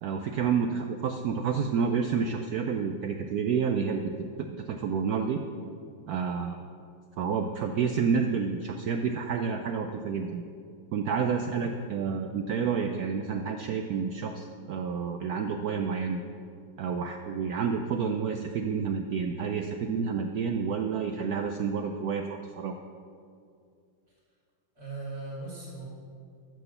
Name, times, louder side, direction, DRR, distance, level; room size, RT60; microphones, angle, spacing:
voice 1, 0.0-4.0 4.4-5.4 6.1-6.7 7.2-10.4 10.9-16.2 16.8-22.8, right 6 dB, 90° right, 5 dB, 0.8 m, -29 dB
voice 2, 11.5-11.9 24.1-24.2 24.8-25.9, right 3 dB, 50° right, -7 dB, 3.5 m, -39 dB
10.5 x 6.3 x 6.8 m, 2.3 s
omnidirectional pair, 2.2 m